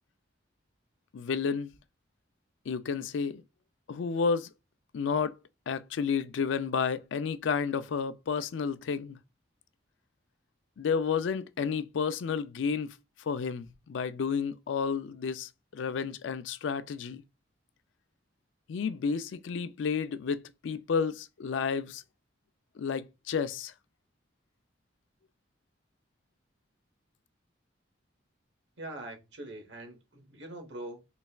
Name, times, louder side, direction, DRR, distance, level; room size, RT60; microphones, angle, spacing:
voice 1, 1.1-1.7 2.7-3.4 3.9-4.5 4.9-5.3 5.7-9.2 10.8-17.2 18.7-22.0 22.8-23.7, left 6 dB, 80° left, 0.4 m, -31 dB
voice 2, 28.8-31.0, right 1 dB, 70° right, 1.0 m, -43 dB
3.9 x 3.2 x 2.3 m
head